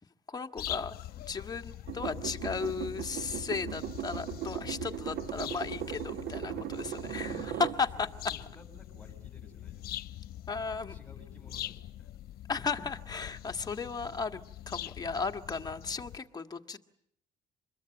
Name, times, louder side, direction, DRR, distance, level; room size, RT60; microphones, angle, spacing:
voice 1, 0.3-8.1 10.5-10.9 12.5-16.8, left 4 dB, 25° left, 6 dB, 1.6 m, -35 dB
sound 1, 0.6-16.2, left 13 dB, 65° left, 1.0 m, -43 dB
sound 2, 1.9-7.8 8.3-8.4, right 12 dB, 80° right, 1.2 m, -38 dB
voice 2, 6.4-10.0 10.6-12.2, left 1 dB, 10° left, 1 dB, 7.4 m, -57 dB
26.0 x 22.0 x 9.1 m, 0.71 s
cardioid pair, 110°, 17 cm